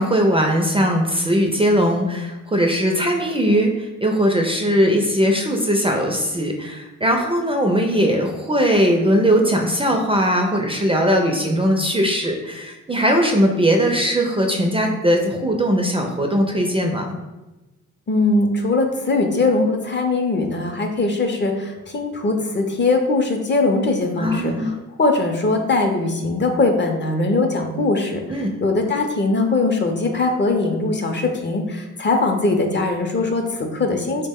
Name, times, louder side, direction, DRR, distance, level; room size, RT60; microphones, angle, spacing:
voice 1, 0.0-17.1 24.2-24.7 28.3-28.5, equal, 20° right, 2 dB, 0.4 m, -19 dB
voice 2, 18.1-24.7 25.0-34.3, left 3 dB, 35° left, 3 dB, 0.6 m, -21 dB
3.5 x 2.1 x 3.5 m, 1.1 s
cardioid pair, 65°, 32 cm